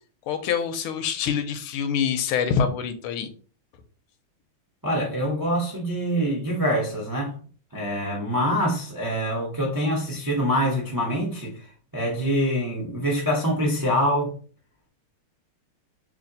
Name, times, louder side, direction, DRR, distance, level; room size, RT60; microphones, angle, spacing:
voice 1, 0.3-3.3, left 7 dB, 85° left, 1.5 m, -25 dB
voice 2, 4.8-7.3 7.7-11.7 11.9-14.3, equal, 30° right, 0.3 m, -25 dB
3.3 x 3.2 x 3.9 m
omnidirectional pair, 2.4 m